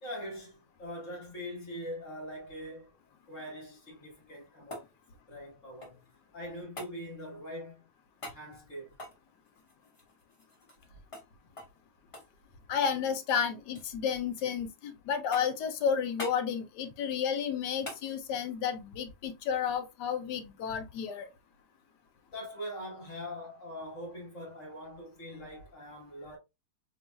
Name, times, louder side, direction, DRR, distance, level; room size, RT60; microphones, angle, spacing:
voice 1, 0.0-3.0 3.3-4.9 5.3-6.0 6.3-7.9 8.3-9.0 22.3-26.4, equal, 45° left, 1.7 m, -42 dB
sound 1, 4.1-6.2 6.8-7.0 8.2-8.4 8.9-10.9 11.1-11.3 11.6-11.8 12.1-13.0 13.3-13.9 14.4-14.9 15.3-15.7 16.2-16.4 17.8-18.1 20.4-20.5, left 1 dB, 30° left, 0.6 m, -45 dB
voice 2, 12.7-21.3, left 7 dB, 70° left, 1.2 m, -32 dB
4.0 x 3.2 x 2.3 m
omnidirectional pair, 2.0 m